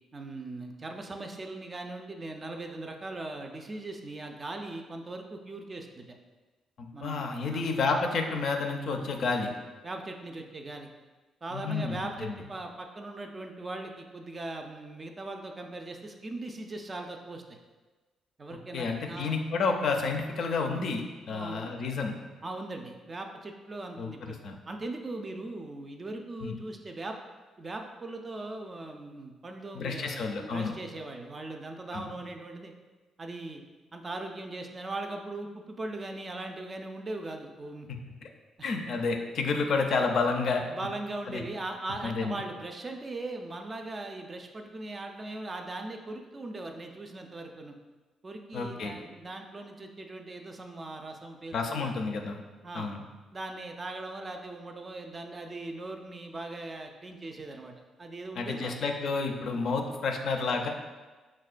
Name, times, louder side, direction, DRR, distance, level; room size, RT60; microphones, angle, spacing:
voice 1, 0.1-6.0 6.9-7.7 9.8-10.9 11.4-17.6 18.4-19.3 21.3-21.7 22.4-24.4 24.7-27.2 27.6-32.7 33.2-33.6 33.9-37.9 38.6-38.7 40.7-47.7 48.2-51.9 52.6-52.9 53.3-57.7 58.0-58.8 59.5-59.6, right 2 dB, 30° right, 4 dB, 0.4 m, -39 dB
voice 2, 6.8-9.5 11.5-12.4 18.7-22.2 24.0-24.6 26.4-26.6 29.7-30.8 31.9-32.1 38.2-38.3 38.6-40.6 41.3-41.4 42.0-42.4 48.5-49.0 51.5-52.4 52.7-53.0 58.4-60.7, left 4 dB, 65° left, 4 dB, 0.4 m, -30 dB
5.4 x 2.1 x 2.4 m, 1.3 s
cardioid pair, 90°, 0 cm